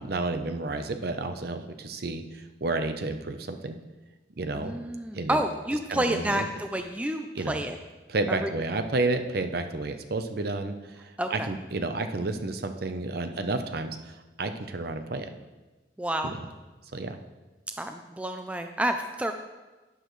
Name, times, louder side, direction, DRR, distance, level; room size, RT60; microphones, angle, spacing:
voice 1, 0.0-3.8 4.4-4.7 5.1-5.4 5.9-6.4 7.4-7.6 8.1-14.1 14.4-15.4 16.2-16.4 16.9-17.2, right 2 dB, 55° right, 7 dB, 0.7 m, -31 dB
voice 2, 4.5-7.8 8.4-8.5 11.2-11.5 16.0-16.3 17.8-19.3, right 1 dB, 5° right, 6 dB, 0.4 m, -29 dB
11.5 x 10.0 x 3.2 m, 1.2 s
head